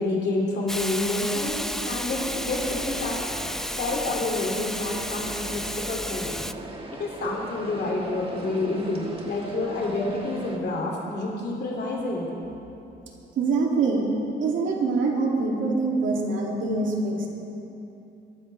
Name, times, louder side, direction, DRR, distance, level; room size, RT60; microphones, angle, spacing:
voice 1, 0.0-3.2 3.8-6.3 7.0-12.3, left 2 dB, 55° left, -2 dB, 2.7 m, -28 dB
Hiss, 0.7-6.5, equal, ahead, 0.5 m, -32 dB
sound 1, 2.1-10.6, right 2 dB, 30° right, 1.8 m, -40 dB
voice 2, 13.4-14.1 14.4-17.3, right 3 dB, 75° right, -1 dB, 2.6 m, -24 dB
23.5 x 12.5 x 3.3 m, 2.9 s
cardioid pair, 90°, 20 cm